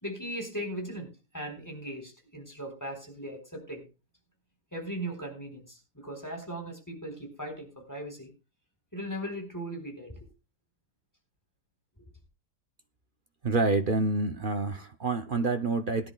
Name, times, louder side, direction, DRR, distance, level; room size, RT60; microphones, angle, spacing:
voice 1, 0.0-3.8 4.7-8.3 8.9-10.2, right 1 dB, 10° left, 3.8 m, -38 dB
voice 2, 13.4-16.1, right 3 dB, 75° right, 0.4 m, -27 dB
21.0 x 11.0 x 2.3 m
omnidirectional pair, 2.0 m